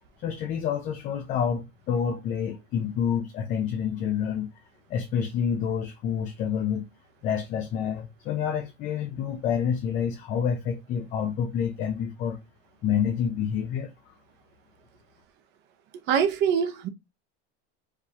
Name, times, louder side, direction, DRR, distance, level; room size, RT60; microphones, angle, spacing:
voice 1, 0.2-4.5 4.9-6.9 7.2-12.4 12.8-13.9, left 7 dB, 25° left, 0.5 m, -28 dB
voice 2, 16.1-16.9, right 7 dB, 35° right, 0.7 m, -23 dB
4.9 x 3.4 x 2.8 m
cardioid pair, 175°, 30 cm